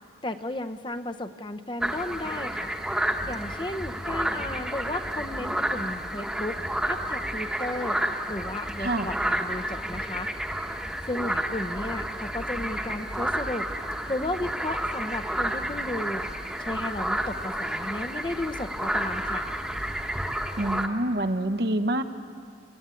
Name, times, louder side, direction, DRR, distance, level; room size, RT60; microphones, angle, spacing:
voice 1, 0.2-2.7 3.3-6.6 6.8-8.0 8.3-10.3 11.0-13.7 14.1-16.2 16.6-19.5, left 1 dB, 25° left, 8 dB, 0.7 m, -34 dB
sound 1, 1.8-20.9, right 1 dB, 5° right, 1.1 m, -30 dB
voice 2, 8.8-9.1 20.6-22.0, right 1 dB, 65° right, 6 dB, 1.1 m, -26 dB
28.5 x 14.5 x 9.2 m, 2.3 s
head